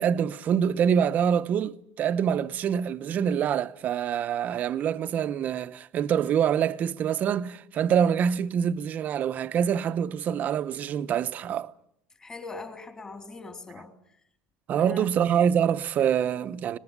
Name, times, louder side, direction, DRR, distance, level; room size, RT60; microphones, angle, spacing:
voice 1, 0.0-11.7 14.7-16.8, right 8 dB, 40° right, 0.9 m, -25 dB
voice 2, 12.2-13.9 14.8-15.1, left 3 dB, 20° left, 3.5 m, -41 dB
24.0 x 20.0 x 8.2 m
cardioid pair, 145°, 4 cm